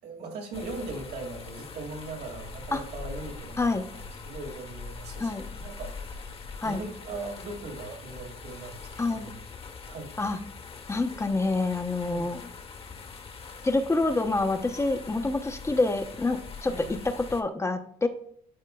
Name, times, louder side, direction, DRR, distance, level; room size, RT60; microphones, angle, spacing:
voice 1, 0.0-6.3 6.6-9.4 9.9-10.1 12.0-12.3 16.6-16.8, right 3 dB, 80° right, 0 dB, 2.0 m, -40 dB
sound 1, 0.5-17.4, left 4 dB, 35° left, 1.0 m, -43 dB
voice 2, 3.6-3.9 5.2-5.5 6.6-6.8 9.0-9.3 10.2-10.4 10.9-12.4 13.6-18.1, left 3 dB, 15° left, 7 dB, 0.6 m, -27 dB
11.5 x 4.4 x 2.2 m, 0.62 s
cardioid pair, 110°, 17 cm